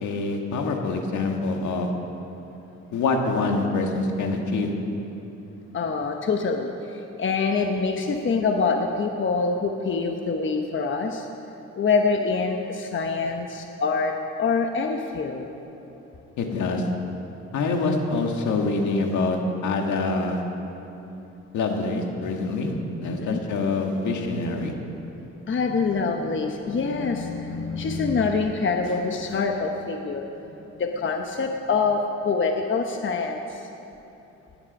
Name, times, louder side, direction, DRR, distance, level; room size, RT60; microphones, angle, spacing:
voice 1, 0.0-1.9 2.9-4.7 16.4-16.8 17.5-20.4 21.5-22.7 23.0-24.7, left 3 dB, 75° left, 2 dB, 1.9 m, -25 dB
voice 2, 5.7-11.3 11.8-14.1 14.4-15.5 23.0-23.4 25.5-30.3 30.8-33.7, left 4 dB, 40° left, 4 dB, 1.1 m, -25 dB
17.0 x 11.0 x 5.5 m, 3.0 s
cardioid pair, 90°, 30 cm